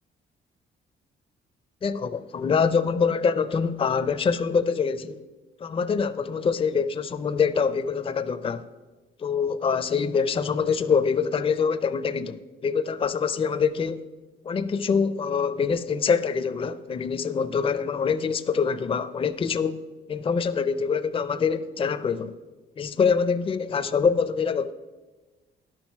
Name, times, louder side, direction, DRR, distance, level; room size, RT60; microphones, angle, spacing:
voice 1, 1.8-5.2 5.6-8.6 9.2-14.0 14.4-19.8 20.1-22.3 22.8-24.7, left 6 dB, 30° left, 0.5 m, -25 dB
10.5 x 6.2 x 5.8 m
cardioid pair, 90°, 20 cm